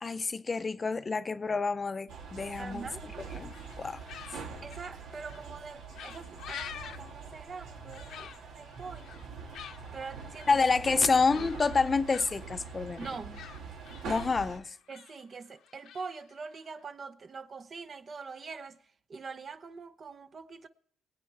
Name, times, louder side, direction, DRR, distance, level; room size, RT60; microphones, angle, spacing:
voice 1, 0.0-2.9 3.4-4.0 10.5-13.1 14.1-14.7, left 4 dB, 30° left, 0.6 m, -28 dB
sound 1, 2.1-14.6, right 5 dB, 85° right, 1.5 m, -44 dB
voice 2, 2.6-3.0 4.6-9.2 9.9-10.7 11.3-11.5 13.0-13.5 14.9-18.8 19.1-20.7, right 4 dB, 45° right, 0.7 m, -44 dB
sound 2, 3.5-16.8, left 9 dB, 80° left, 0.9 m, -48 dB
20.5 x 8.8 x 3.3 m
cardioid pair, 90°, 0 cm